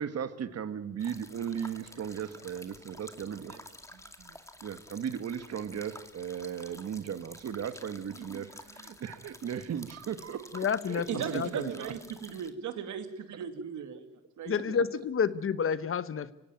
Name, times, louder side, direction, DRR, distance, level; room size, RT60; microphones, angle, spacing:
voice 1, 0.0-3.6 3.9-4.4 4.6-11.9 14.7-14.8, right 8 dB, 55° right, 1.6 m, -37 dB
sound 1, 1.0-12.5, left 1 dB, 10° left, 2.2 m, -51 dB
voice 2, 10.5-11.7 14.4-16.3, left 6 dB, 45° left, 1.1 m, -30 dB
voice 3, 11.1-14.1 14.4-14.6, right 7 dB, 75° right, 2.4 m, -37 dB
25.0 x 16.5 x 9.3 m
cardioid pair, 90°, 30 cm